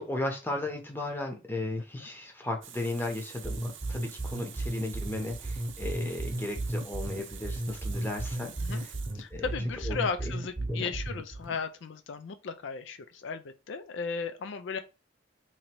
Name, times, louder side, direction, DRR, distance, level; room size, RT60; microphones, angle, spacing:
voice 1, 0.0-8.9 9.3-9.5 9.8-10.3 10.6-11.0 11.5-11.6, left 2 dB, 10° left, 0.8 m, -36 dB
Water tap faucet, 2.6-9.6, right 9 dB, 75° right, 0.6 m, -48 dB
sound 1, 3.4-11.4, right 1 dB, 25° right, 0.9 m, -34 dB
voice 2, 9.1-14.8, left 5 dB, 75° left, 0.4 m, -36 dB
3.0 x 2.6 x 4.3 m
head